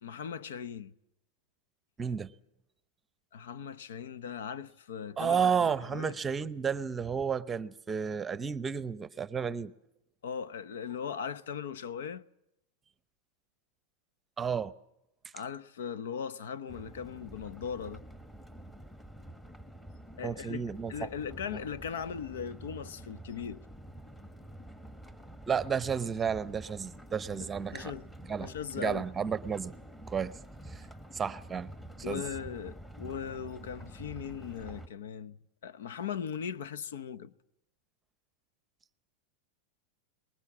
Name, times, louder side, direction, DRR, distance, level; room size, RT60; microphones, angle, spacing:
voice 1, 0.0-0.9 3.3-6.2 10.2-12.2 15.3-18.0 20.2-20.6 20.9-23.6 27.4-28.1 28.4-29.0 32.0-35.4 35.6-37.3, left 7 dB, 85° left, 0.9 m, -39 dB
voice 2, 2.0-2.3 5.2-9.7 14.4-14.7 20.2-20.9 25.5-27.9 28.3-28.5 28.8-29.8 30.1-30.3 30.7-30.8 31.1-31.7 32.0-32.2, right 6 dB, 15° right, 0.8 m, -32 dB
sound 1, 16.7-34.9, right 1 dB, 10° left, 1.5 m, -48 dB
23.0 x 20.5 x 7.3 m
supercardioid pair, 145°, 0 cm